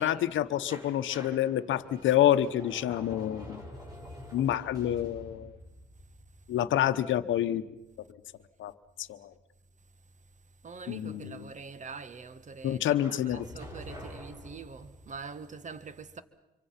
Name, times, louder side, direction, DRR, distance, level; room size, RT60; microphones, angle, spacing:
voice 1, 0.0-3.6 4.3-5.6 6.5-7.6 8.6-8.7 9.0-9.3 10.9-11.5 12.6-13.4, left 11 dB, 75° left, 1.0 m, -28 dB
sound 1, 0.7-7.5 13.0-15.2, left 1 dB, 20° right, 6.2 m, -47 dB
voice 2, 10.6-16.2, right 4 dB, 40° right, 1.6 m, -44 dB
26.5 x 24.0 x 5.9 m
cardioid pair, 90°, 20 cm